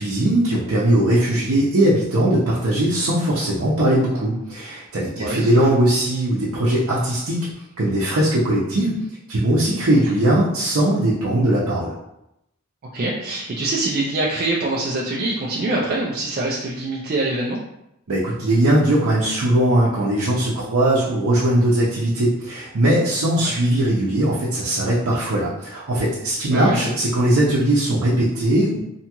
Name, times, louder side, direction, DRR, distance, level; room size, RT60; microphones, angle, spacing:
voice 1, 0.0-7.5 7.8-8.9 9.3-11.9 18.1-28.8, right 1 dB, 80° right, -7 dB, 0.6 m, -19 dB
voice 2, 5.2-5.5 12.9-17.6 23.4-23.6 26.5-26.8, right 2 dB, 45° right, -4 dB, 0.4 m, -24 dB
2.7 x 2.3 x 2.9 m, 0.83 s
head